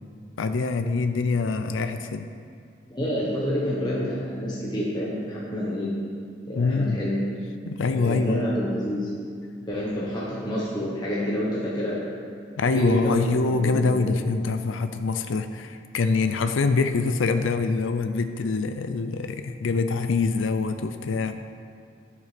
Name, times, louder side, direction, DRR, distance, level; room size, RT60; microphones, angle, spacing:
voice 1, 0.4-2.3 6.6-7.0 7.7-8.4 12.6-21.3, left 4 dB, 85° left, 9 dB, 0.5 m, -25 dB
voice 2, 2.9-6.0 6.5-7.3 7.9-9.1 9.7-12.0 12.7-13.4 13.6-14.2, equal, 20° left, -7 dB, 1.2 m, -28 dB
11.5 x 6.9 x 5.1 m, 2.4 s
head